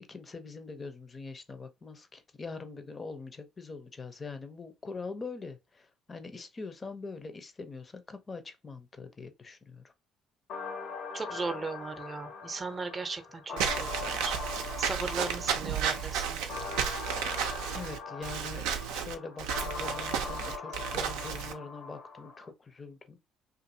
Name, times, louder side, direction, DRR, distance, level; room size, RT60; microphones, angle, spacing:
voice 1, 0.1-9.9 17.7-23.2, left 4 dB, 35° left, 0.6 m, -43 dB
sound 1, 10.5-22.5, left 5 dB, 65° left, 0.8 m, -41 dB
voice 2, 11.1-14.4 14.8-16.4, right 4 dB, 35° right, 0.6 m, -37 dB
Walk footsteps / Squeak, 13.6-21.5, right 8 dB, 75° right, 0.4 m, -33 dB
2.6 x 2.5 x 2.6 m
hypercardioid pair, 55°, 0 cm